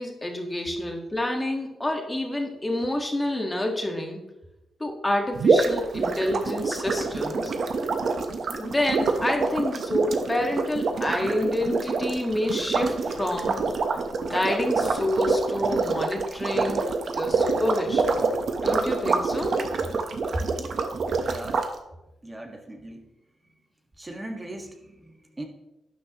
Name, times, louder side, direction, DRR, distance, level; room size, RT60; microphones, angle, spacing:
voice 1, 0.0-4.2 4.8-7.5 8.5-13.6 14.2-16.9 17.1-18.2 18.6-19.6, left 1 dB, 15° left, 2 dB, 1.6 m, -28 dB
sound 1, 5.4-21.7, right 4 dB, 55° right, 1.0 m, -26 dB
voice 2, 21.2-21.6 22.2-23.0 24.0-25.4, right 1 dB, 20° right, 2 dB, 1.5 m, -37 dB
12.0 x 9.9 x 3.0 m, 0.96 s
cardioid pair, 95°, 0 cm